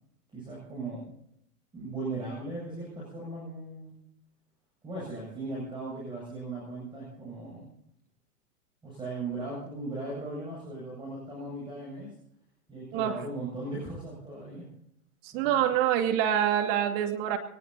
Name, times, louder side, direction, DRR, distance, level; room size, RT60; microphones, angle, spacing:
voice 1, 0.3-1.1 1.7-3.9 4.8-7.7 8.8-12.1 12.7-14.7 15.3-15.5, right 2 dB, 10° right, -5 dB, 7.9 m, -38 dB
voice 2, 15.2-17.4, right 10 dB, 40° right, 6 dB, 2.5 m, -26 dB
23.0 x 19.5 x 2.9 m, 0.73 s
hypercardioid pair, 120°, 46 cm